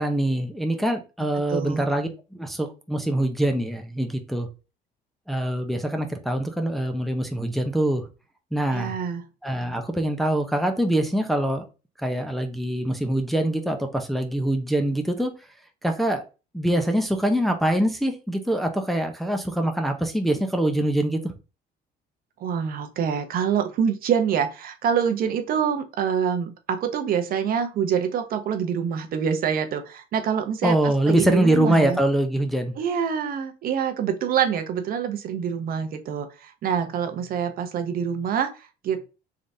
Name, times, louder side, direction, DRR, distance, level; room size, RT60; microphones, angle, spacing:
voice 1, 0.0-4.5 5.3-8.0 8.5-8.9 9.4-11.7 12.0-15.3 15.8-16.2 16.5-21.3 30.6-32.7, right 1 dB, ahead, 0.6 m, -24 dB
voice 2, 1.3-1.8 8.7-9.2 22.4-32.0 32.8-39.1, right 7 dB, 60° right, 0.7 m, -26 dB
3.6 x 3.4 x 2.7 m
cardioid pair, 110°, 17 cm